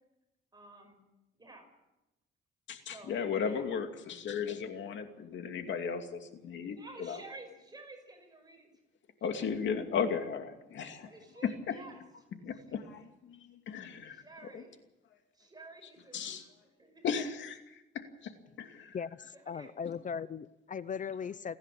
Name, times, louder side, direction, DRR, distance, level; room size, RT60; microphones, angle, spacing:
voice 1, 0.5-1.0 1.3-1.7 2.8-3.2 3.4-3.7 6.7-8.7 9.3-9.7 11.0-12.0 12.5-12.8 14.1-14.8 15.3-17.0 19.3-19.7, right 2 dB, 20° right, 4 dB, 5.4 m, -52 dB
voice 2, 2.7-7.2 9.2-11.1 11.4-11.7 12.4-13.0 13.3-14.2 14.5-14.6 16.1-16.4 17.0-19.0, left 6 dB, 70° left, 6 dB, 2.6 m, -36 dB
voice 3, 18.9-21.6, left 6 dB, 40° left, 17 dB, 0.7 m, -38 dB
30.0 x 10.5 x 8.7 m, 0.96 s
cardioid pair, 90°, 20 cm